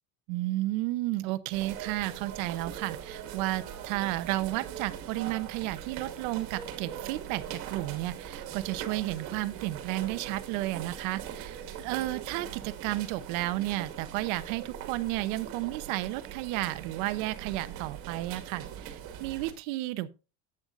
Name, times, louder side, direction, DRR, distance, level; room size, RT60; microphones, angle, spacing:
voice 1, 0.3-20.1, right 17 dB, 75° right, 0.9 m, -32 dB
sound 1, 1.5-19.5, right 9 dB, 60° right, 1.9 m, -41 dB
11.5 x 8.9 x 2.5 m
cardioid pair, 145°, 41 cm